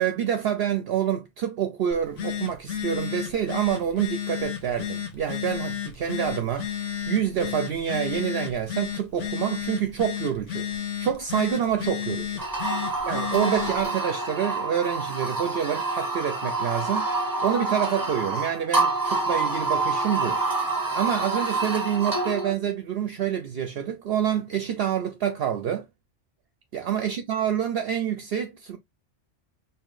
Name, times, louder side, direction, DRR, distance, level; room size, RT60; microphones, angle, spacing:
voice 1, 0.0-12.4 13.0-20.4 20.9-25.8 26.7-28.8, right 9 dB, 60° right, 0.8 m, -27 dB
Telephone, 1.9-13.8, left 9 dB, 85° left, 1.2 m, -32 dB
sound 1, 12.4-22.5, right 3 dB, 20° right, 0.8 m, -27 dB
4.7 x 3.1 x 2.4 m
omnidirectional pair, 1.2 m